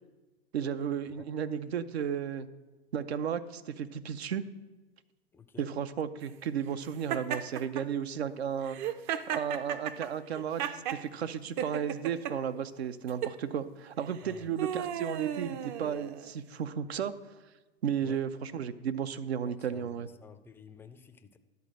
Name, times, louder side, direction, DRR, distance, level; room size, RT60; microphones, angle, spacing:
voice 1, 0.5-2.5 2.9-4.5 5.6-8.8 9.3-17.1 17.8-20.1, right 8 dB, 85° right, 12 dB, 0.7 m, -34 dB
voice 2, 5.3-5.7 14.2-14.5 18.0-18.2 19.4-21.4, left 6 dB, 5° left, 9 dB, 0.4 m, -52 dB
Laughter, 7.1-7.8 8.6-11.0 11.6-12.3 13.1-13.4 14.1-16.3, right 9 dB, 50° right, 0.6 m, -35 dB
11.0 x 4.2 x 7.6 m, 1.2 s
hypercardioid pair, 110°, 31 cm